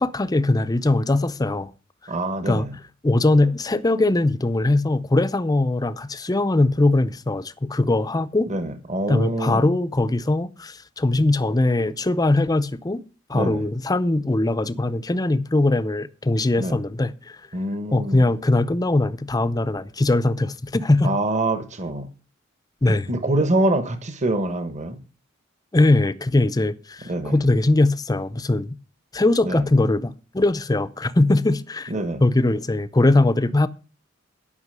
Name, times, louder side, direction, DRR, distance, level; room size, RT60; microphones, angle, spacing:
voice 1, 0.0-1.7 2.5-2.7 3.0-8.5 9.1-13.0 13.3-17.4 17.9-21.1 22.8-23.1 25.7-28.8 29.1-31.9 32.2-33.7, left 2 dB, 20° left, 0.5 m, -21 dB
voice 2, 2.1-2.7 8.5-9.6 13.3-13.7 16.6-16.8 17.5-18.3 21.0-22.1 22.9-25.0 27.1-27.3 29.4-29.7 31.9-32.2, right 1 dB, 35° right, 1.2 m, -25 dB
11.0 x 5.7 x 6.7 m
head